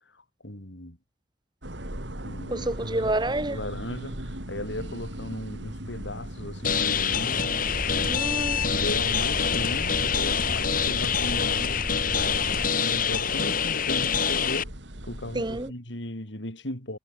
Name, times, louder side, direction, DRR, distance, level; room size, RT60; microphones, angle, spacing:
voice 1, 0.4-1.0 2.2-2.7 3.4-7.4 7.9-8.2 8.5-11.8 12.2-14.7 15.0-17.0, left 1 dB, 90° left, 7.0 m, -36 dB
sound 1, 1.6-15.7, right 1 dB, 90° right, 4.6 m, -39 dB
voice 2, 2.5-3.6 8.0-8.6 15.3-15.7, right 1 dB, 25° right, 2.1 m, -28 dB
sound 2, 6.6-14.6, left 7 dB, 50° left, 3.8 m, -26 dB
sound 3, 7.7-12.7, equal, 5° left, 7.4 m, -36 dB
head